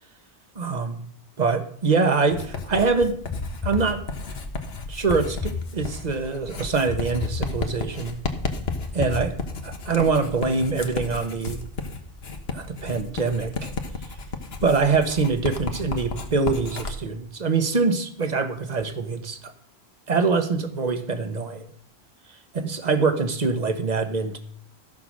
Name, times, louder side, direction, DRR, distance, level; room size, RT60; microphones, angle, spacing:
voice 1, 0.5-1.1 1.4-3.2 3.6-4.0 4.9-8.2 8.9-9.4 9.6-11.6 12.5-13.7 14.6-19.5 20.1-21.7 22.5-24.4, right 4 dB, 45° right, 8 dB, 1.3 m, -24 dB
Writing, 2.3-17.0, left 3 dB, 75° left, 1.5 m, -33 dB
sound 1, 3.3-4.4 5.1-6.2 6.9-8.0 8.7-9.8, left 5 dB, 20° left, 0.8 m, -34 dB
14.5 x 5.8 x 6.4 m, 0.62 s
omnidirectional pair, 1.1 m